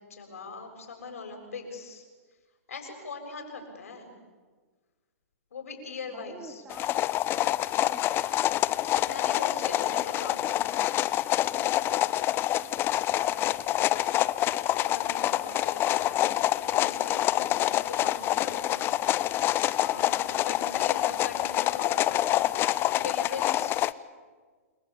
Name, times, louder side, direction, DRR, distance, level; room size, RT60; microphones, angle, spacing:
voice 1, 0.1-2.0 2.7-4.1 5.5-6.6 9.0-10.9 11.4-11.7 14.7-16.3 16.6-18.8 19.8-23.7, left 4 dB, 75° left, 4 dB, 7.3 m, -41 dB
voice 2, 6.1-7.1 7.8-8.6 12.5-13.6 15.2-15.8 20.3-20.6, right 3 dB, 15° right, 4 dB, 3.7 m, -50 dB
sound 1, 6.7-23.9, left 14 dB, 30° left, 0.8 m, -26 dB
29.5 x 22.0 x 8.7 m, 1.5 s
hypercardioid pair, 115°, 8 cm